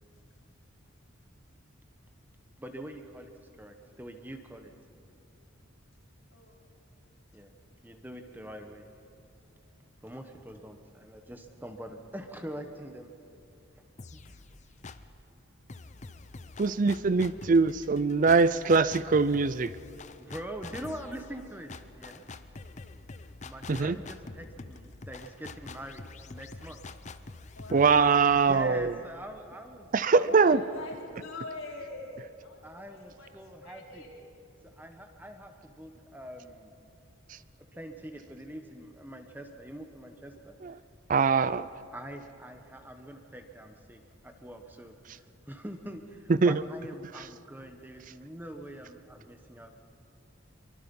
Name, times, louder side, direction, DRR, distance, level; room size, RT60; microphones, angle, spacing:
voice 1, 2.6-4.7 7.3-7.5 7.8-8.9 10.0-13.1 14.1-14.3 16.2-16.5 20.2-21.7 22.0-22.2 23.4-26.8 28.4-29.9 30.1-30.3 32.6-34.0 34.8-36.7 37.7-40.6 41.9-44.9 45.5-49.7, right 1 dB, 10° right, 5 dB, 1.2 m, -44 dB
voice 2, 6.3-6.8 7.4-7.6 16.1-16.5 20.2-20.3 20.6-20.7 27.6-28.5 30.2-33.3 33.6-34.3, left 2 dB, 85° left, -2 dB, 4.5 m, -44 dB
sound 1, 14.0-15.2 15.7-29.4, left 3 dB, 35° left, 0.6 m, -46 dB
voice 3, 16.6-19.7 23.7-24.0 27.7-28.9 29.9-30.6 40.6-40.7 41.1-41.7 46.4-46.6, right 4 dB, 40° right, 16 dB, 0.4 m, -23 dB
24.5 x 23.5 x 5.4 m, 2.7 s
head